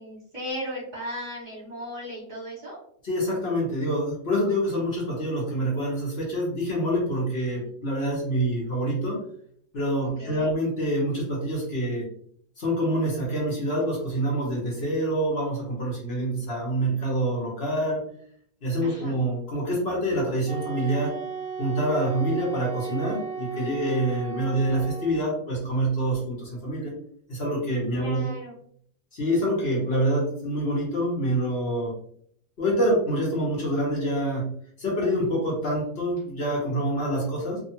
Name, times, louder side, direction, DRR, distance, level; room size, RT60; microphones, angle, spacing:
voice 1, 0.0-2.8 10.0-10.5 18.8-19.2 27.9-28.5, equal, 25° right, -7 dB, 1.3 m, -36 dB
voice 2, 3.0-9.2 9.7-12.1 12.6-18.0 18.6-21.2 21.6-26.9 27.3-28.4 29.1-31.9 32.6-34.5 34.8-37.6, right 1 dB, 45° left, -4 dB, 1.0 m, -26 dB
Wind instrument woodwind instrument, 20.5-25.4, right 5 dB, 85° right, 0.4 m, -35 dB
2.8 x 2.3 x 2.8 m, 0.63 s
omnidirectional pair, 1.7 m